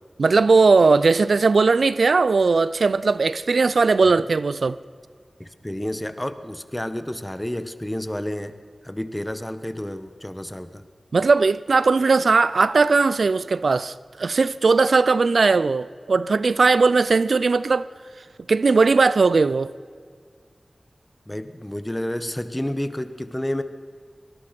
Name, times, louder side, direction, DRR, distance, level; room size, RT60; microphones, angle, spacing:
voice 1, 0.2-4.8 11.1-17.9 18.5-19.7, right 4 dB, 85° right, 0.4 m, -18 dB
voice 2, 5.4-8.5 8.8-10.8 21.3-23.6, left 1 dB, 15° left, 1.3 m, -30 dB
24.0 x 19.5 x 6.0 m
cardioid pair, 45°, 0 cm